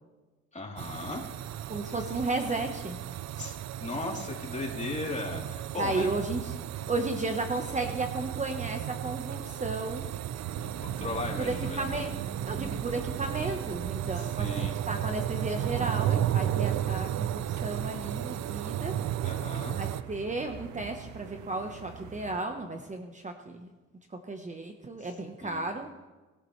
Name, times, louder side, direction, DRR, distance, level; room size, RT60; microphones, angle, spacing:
voice 1, 0.5-1.3 3.4-6.1 10.6-12.0 14.1-14.7 19.2-19.8 25.0-25.1 25.4-25.7, left 2 dB, 25° left, -2 dB, 3.4 m, -37 dB
sound 1, 0.8-20.0, right 11 dB, 65° right, 0.5 m, -34 dB
voice 2, 1.7-3.0 5.8-6.5 6.9-10.1 11.4-12.1 12.4-18.9 19.7-23.7 24.3-25.9, right 2 dB, 25° right, 4 dB, 1.2 m, -34 dB
sound 2, 10.4-22.4, right 6 dB, 80° right, 1.1 m, -43 dB
20.5 x 11.5 x 3.3 m, 1.2 s
cardioid pair, 90°, 30 cm